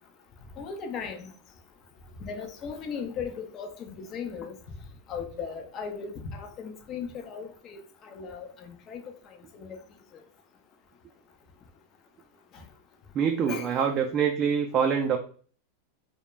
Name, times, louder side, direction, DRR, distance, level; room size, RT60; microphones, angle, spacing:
voice 1, 0.6-1.3 2.2-4.6 5.1-9.0 9.6-9.8 13.5-13.7, left 6 dB, 40° left, 0.5 m, -37 dB
voice 2, 13.1-15.2, right 7 dB, 35° right, 0.3 m, -25 dB
2.3 x 2.1 x 3.0 m
hypercardioid pair, 115°, 0 cm